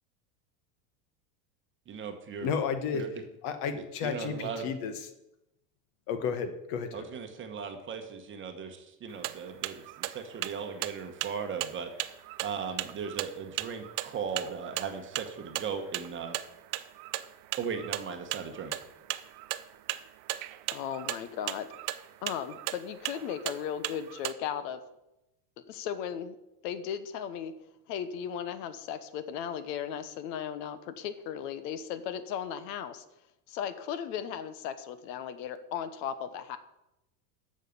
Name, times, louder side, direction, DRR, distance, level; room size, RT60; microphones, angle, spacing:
voice 1, 1.9-2.5 2.9-3.1 3.7-4.7 6.9-11.9 12.4-16.4 17.6-18.7, right 6 dB, 25° right, 5 dB, 1.0 m, -37 dB
voice 2, 2.4-3.0 3.4-5.1 6.1-7.1, left 6 dB, 55° left, 10 dB, 1.4 m, -32 dB
sound 1, 9.1-24.3, right 17 dB, 45° right, 0.5 m, -36 dB
voice 3, 20.7-21.7 22.2-24.8 25.7-26.4 26.6-27.5 27.9-33.0 33.5-36.6, left 8 dB, 75° left, 13 dB, 1.0 m, -36 dB
9.0 x 6.5 x 7.1 m, 0.90 s
supercardioid pair, 150°, 50 cm